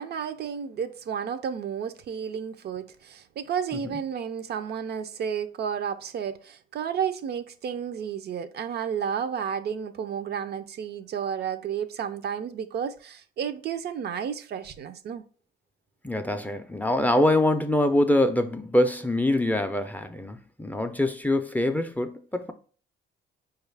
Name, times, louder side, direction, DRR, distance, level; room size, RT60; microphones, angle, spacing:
voice 1, 0.0-15.2, right 7 dB, 55° right, 0.4 m, -32 dB
voice 2, 16.0-22.5, left 1 dB, 10° left, 0.4 m, -24 dB
4.8 x 2.3 x 3.3 m
cardioid pair, 90°, 20 cm